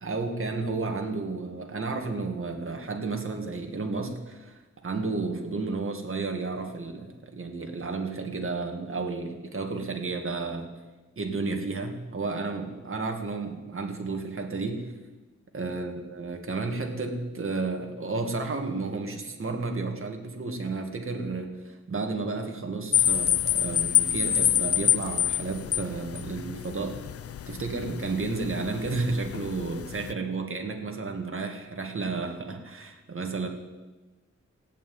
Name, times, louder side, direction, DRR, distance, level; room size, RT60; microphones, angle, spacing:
voice 1, 0.0-10.7 11.2-14.9 15.5-27.0 27.5-33.5, right 3 dB, 45° right, 3 dB, 2.2 m, -32 dB
sound 1, 22.9-30.1, left 10 dB, 55° left, 0.4 m, -27 dB
15.0 x 9.2 x 9.5 m, 1.2 s
wide cardioid pair, 135°, 29 cm